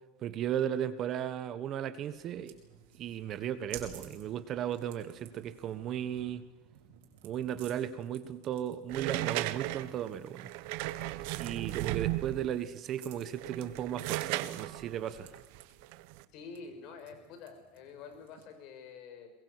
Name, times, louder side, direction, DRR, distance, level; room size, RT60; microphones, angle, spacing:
voice 1, 0.2-2.5 3.0-6.4 7.2-10.5 11.4-15.3, right 10 dB, 40° right, 13 dB, 1.3 m, -35 dB
sound 1, 2.0-18.6, right 10 dB, 80° right, 5.0 m, -55 dB
sound 2, 8.9-12.6 13.3-16.2, right 18 dB, 65° right, 1.1 m, -36 dB
voice 2, 16.3-19.3, left 5 dB, 50° left, 7 dB, 5.6 m, -47 dB
22.0 x 22.0 x 8.2 m, 1.1 s
supercardioid pair, 140°, 0 cm